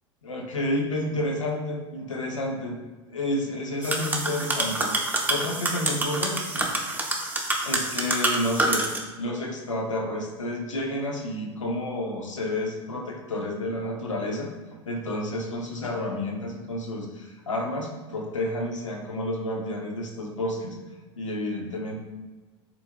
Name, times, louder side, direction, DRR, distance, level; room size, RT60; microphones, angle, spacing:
voice 1, 0.2-2.8 3.1-6.7 7.6-8.9 9.2-14.5 14.9-20.8 21.2-22.0, left 1 dB, 90° left, 1 dB, 0.6 m, -30 dB
sound 1, 3.8-9.0, right 2 dB, 10° right, 0.6 m, -27 dB
4.0 x 2.5 x 2.8 m, 1.2 s
hypercardioid pair, 80°, 16 cm